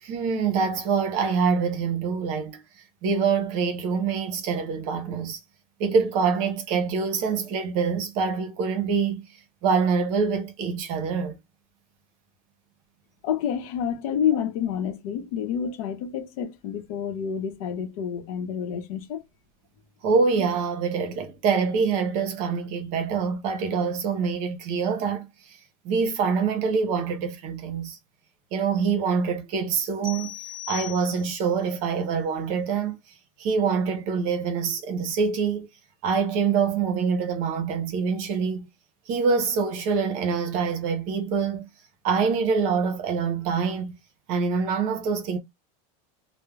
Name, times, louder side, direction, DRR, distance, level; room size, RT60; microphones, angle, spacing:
voice 1, 0.0-2.6 3.0-5.4 5.8-9.2 9.6-11.4 20.0-25.6 25.8-28.0 28.5-30.3 30.7-33.0 33.4-35.7 36.0-38.7 39.1-41.7 42.0-43.9 44.3-45.4, right 5 dB, 40° right, 0.7 m, -25 dB
voice 2, 13.2-19.2, left 8 dB, 70° left, 0.8 m, -28 dB
sound 1, 30.0-31.6, left 11 dB, 5° left, 0.9 m, -38 dB
3.2 x 2.1 x 2.3 m
supercardioid pair, 170°, 19 cm